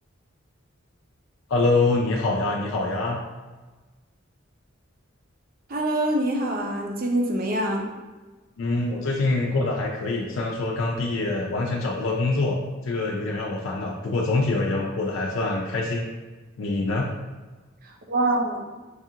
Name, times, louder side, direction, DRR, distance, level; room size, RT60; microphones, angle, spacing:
voice 1, 1.5-3.2 8.6-16.0 16.6-17.1, left 2 dB, 75° left, -1 dB, 0.4 m, -25 dB
voice 2, 5.7-7.9 17.8-18.7, right 1 dB, 45° right, 1 dB, 0.5 m, -25 dB
4.6 x 2.4 x 2.7 m, 1.3 s
head